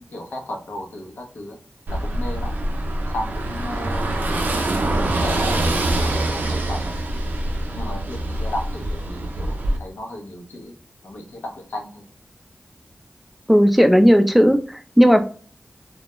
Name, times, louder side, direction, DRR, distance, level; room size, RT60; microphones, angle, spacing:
voice 1, 0.0-1.6 1.9-2.5 3.1-4.4 4.7-5.6 6.0-6.9 7.7-10.7 11.0-12.0, left 1 dB, 85° left, 2 dB, 0.6 m, -34 dB
Car passing by / Engine, 1.9-9.8, right 1 dB, 80° right, 0.4 m, -24 dB
voice 2, 13.5-15.2, equal, 5° right, 7 dB, 0.3 m, -14 dB
2.2 x 2.1 x 2.9 m, 0.42 s
cardioid pair, 45°, 3 cm